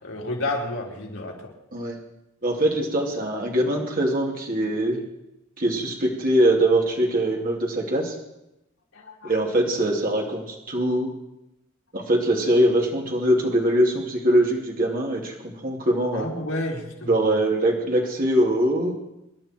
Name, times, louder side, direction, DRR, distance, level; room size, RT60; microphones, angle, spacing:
voice 1, 0.0-1.5 8.9-9.3 16.1-17.4, left 1 dB, 80° left, -2 dB, 3.9 m, -31 dB
voice 2, 2.4-5.0 5.6-8.1 9.2-11.1 11.9-16.3 17.1-18.9, right 1 dB, 45° right, 0 dB, 2.9 m, -22 dB
27.0 x 11.5 x 4.6 m, 0.90 s
head